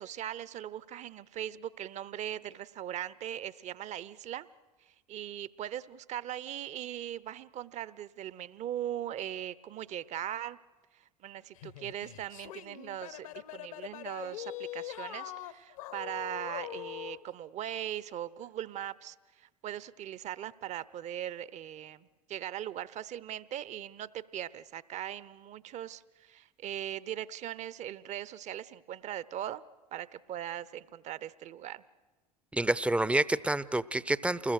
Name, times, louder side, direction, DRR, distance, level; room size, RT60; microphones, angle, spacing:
voice 1, 0.0-4.5 4.8-10.6 10.9-29.6 29.9-31.8, right 11 dB, 35° right, 19 dB, 0.9 m, -40 dB
sound 1, 11.6-17.2, left 13 dB, 65° left, 1.2 m, -43 dB
voice 2, 32.5-34.5, right 2 dB, 5° right, 18 dB, 0.7 m, -28 dB
28.5 x 21.0 x 6.4 m, 1.2 s
figure-of-eight pair, 75°, 20 cm